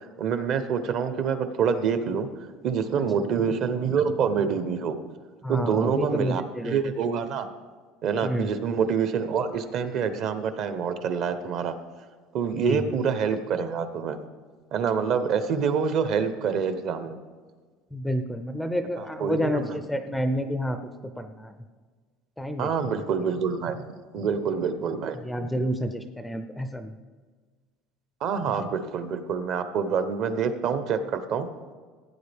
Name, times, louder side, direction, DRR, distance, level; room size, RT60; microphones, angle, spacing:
voice 1, 0.2-2.3 2.6-4.9 5.5-7.5 8.0-11.7 12.3-14.2 14.7-17.2 19.2-19.8 22.6-23.8 24.1-25.2 28.2-31.5, right 6 dB, 45° right, 10 dB, 0.8 m, -26 dB
voice 2, 5.4-6.9 8.2-8.5 12.5-12.8 17.9-20.8 21.2-21.5 22.4-23.0 25.2-27.0, equal, ahead, 8 dB, 0.5 m, -29 dB
16.0 x 9.0 x 3.5 m, 1.5 s
cardioid pair, 165°, 0 cm